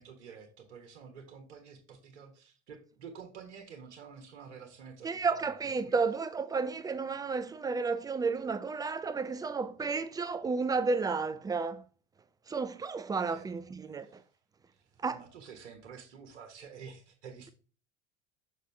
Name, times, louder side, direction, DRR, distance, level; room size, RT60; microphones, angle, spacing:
voice 1, 0.0-5.4 5.8-5.9 13.3-13.5 13.8-14.2 14.7-17.5, right 6 dB, 65° right, 1.3 m, -50 dB
voice 2, 5.0-11.8 12.5-14.2 15.0-15.2, right 4 dB, 10° right, 0.4 m, -32 dB
6.5 x 5.1 x 3.3 m
figure-of-eight pair, 75°, 36 cm